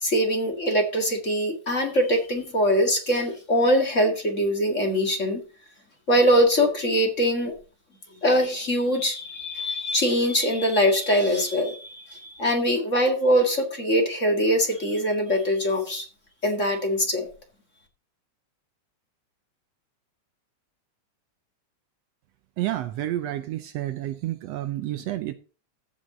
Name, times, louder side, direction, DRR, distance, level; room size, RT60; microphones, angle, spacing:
voice 1, 0.0-5.4 6.1-7.5 8.2-16.1 16.4-17.3, equal, 30° left, 1.8 m, -23 dB
voice 2, 22.6-25.3, right 14 dB, 75° right, 1.6 m, -30 dB
15.0 x 5.8 x 3.9 m
omnidirectional pair, 3.4 m